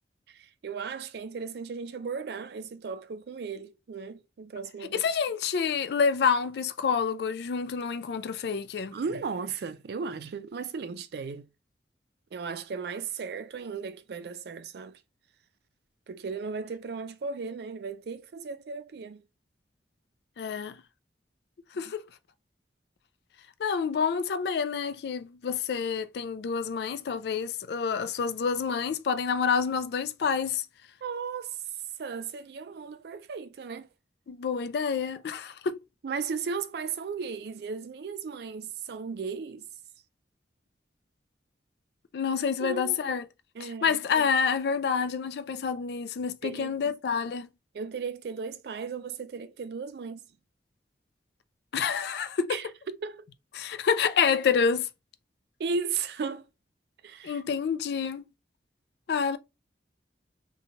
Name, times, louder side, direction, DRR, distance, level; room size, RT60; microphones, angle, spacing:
voice 1, 0.3-5.0 8.9-11.5 12.3-15.0 16.1-19.2 31.0-31.6 32.0-33.9 36.0-39.7 42.6-43.1 43.5-44.3 46.4-46.9 47.7-50.2 52.5-53.2 55.6-56.5 57.0-57.4, right 5 dB, 60° right, 0.4 m, -36 dB
voice 2, 4.9-9.0 20.4-20.8 21.8-22.0 23.6-30.7 34.3-35.8 42.1-43.2 43.6-47.5 51.7-52.6 53.6-54.9 57.2-58.2 59.1-59.4, left 6 dB, 65° left, 0.3 m, -28 dB
2.7 x 2.2 x 2.8 m
head